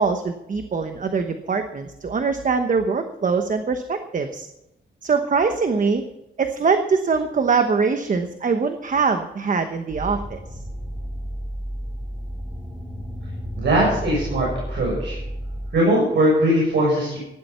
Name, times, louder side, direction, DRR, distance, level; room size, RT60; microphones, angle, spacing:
voice 1, 0.0-4.5 5.0-6.0 6.4-10.4, right 5 dB, 40° right, 7 dB, 1.0 m, -22 dB
sound 1, 9.9-15.7, equal, 15° right, 3.8 m, -32 dB
voice 2, 13.5-15.2 15.7-17.2, right 1 dB, 70° right, -3 dB, 7.0 m, -20 dB
16.0 x 11.0 x 5.8 m, 0.90 s
wide cardioid pair, 140°, 19 cm